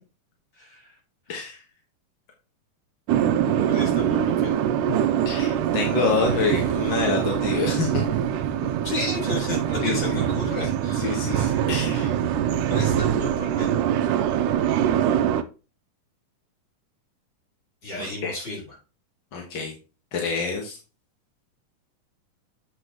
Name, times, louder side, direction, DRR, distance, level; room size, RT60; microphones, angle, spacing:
voice 1, 0.6-0.9 3.7-4.6 8.8-11.6 12.7-13.7 17.8-18.6, left 2 dB, 30° left, -3 dB, 4.7 m, -33 dB
voice 2, 1.3-1.6 5.2-8.0 9.8-10.3 10.9-12.2 18.0-18.3 19.3-19.7 20.1-20.7, left 4 dB, 50° left, 1 dB, 1.6 m, -27 dB
sound 1, 3.1-15.4, right 10 dB, 85° right, 2.1 m, -23 dB
7.8 x 7.8 x 2.9 m, 0.32 s
omnidirectional pair, 3.7 m